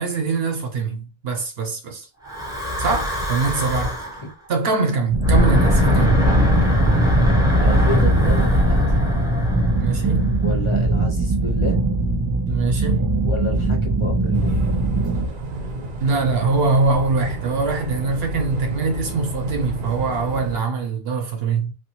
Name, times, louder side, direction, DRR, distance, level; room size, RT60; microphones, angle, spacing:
voice 1, 0.0-2.1 2.8-4.0 4.5-6.3 9.8-10.3 12.5-13.1 16.0-21.7, right 4 dB, 75° right, 1.0 m, -23 dB
Breathing / Wind, 2.3-4.2 5.1-10.5, left 1 dB, 5° right, 0.8 m, -20 dB
sound 1, 5.1-15.3, right 2 dB, 35° right, 0.3 m, -21 dB
voice 2, 7.5-9.0 10.4-11.8 13.2-14.5 14.9-15.0, left 2 dB, 40° left, 0.5 m, -30 dB
sound 2, 14.3-20.6, right 2 dB, 55° right, 0.8 m, -31 dB
3.3 x 2.5 x 2.9 m
omnidirectional pair, 1.0 m